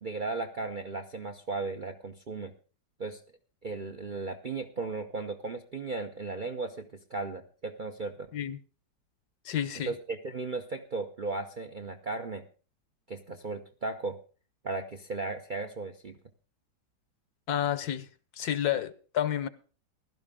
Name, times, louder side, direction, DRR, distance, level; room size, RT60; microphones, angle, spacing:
voice 1, 0.0-2.5 3.0-3.2 3.6-8.3 9.9-12.4 13.1-14.2 14.6-16.2, right 3 dB, 50° right, 0.6 m, -36 dB
voice 2, 9.4-9.9 17.5-18.1 18.4-19.5, left 10 dB, 70° left, 1.2 m, -30 dB
16.0 x 12.5 x 3.7 m
omnidirectional pair, 1.8 m